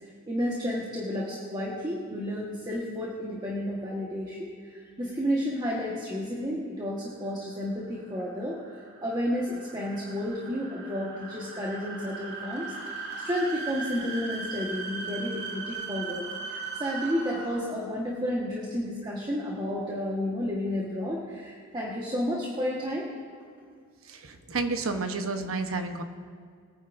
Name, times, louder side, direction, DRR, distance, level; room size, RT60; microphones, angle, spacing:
voice 1, 0.0-8.6 9.0-23.1, equal, 20° right, -4 dB, 1.4 m, -31 dB
sound 1, 7.2-17.9, right 4 dB, 55° right, 2.1 m, -39 dB
voice 2, 24.0-26.0, right 3 dB, 75° right, 6 dB, 1.0 m, -31 dB
21.5 x 9.8 x 2.6 m, 2.1 s
head